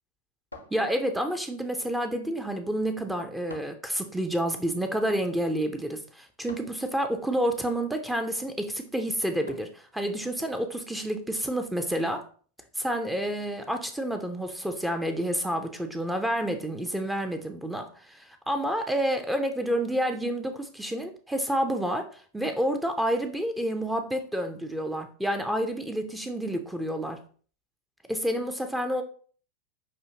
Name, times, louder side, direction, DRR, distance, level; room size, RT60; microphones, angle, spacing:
sound 1, 0.5-1.4 3.5-3.9 6.5-6.9 9.5-9.9, left 2 dB, 85° left, 0.6 m, -46 dB
voice 1, 0.7-12.2 12.8-27.2 28.1-29.0, right 1 dB, 5° right, 6 dB, 0.5 m, -29 dB
6.2 x 2.6 x 2.8 m, 0.43 s
figure-of-eight pair, 90°, 0 cm